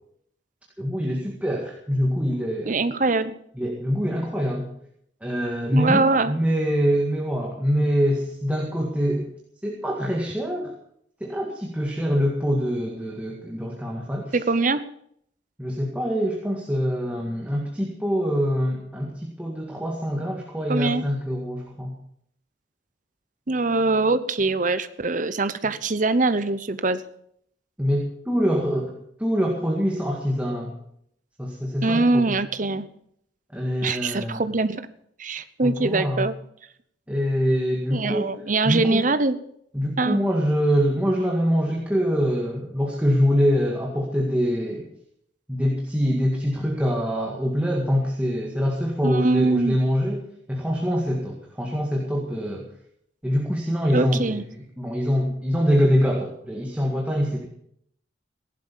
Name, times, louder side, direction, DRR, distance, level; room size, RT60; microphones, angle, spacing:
voice 1, 0.8-2.8 3.6-4.7 5.2-9.3 9.6-10.7 11.2-14.4 15.6-21.9 27.8-30.7 31.4-32.2 33.5-34.4 35.6-36.3 37.1-38.3 38.6-39.1 39.7-44.8 45.5-52.7 53.2-54.4 54.8-57.5, equal, 5° right, -1 dB, 2.0 m, -24 dB
voice 2, 2.7-3.3 5.7-6.3 14.3-14.8 20.7-21.0 23.5-27.0 31.8-32.9 33.8-34.8 35.2-36.3 37.9-39.4 40.0-40.2 49.0-49.8 53.9-54.4, right 3 dB, 45° right, 13 dB, 0.9 m, -23 dB
16.0 x 11.5 x 7.0 m, 0.69 s
head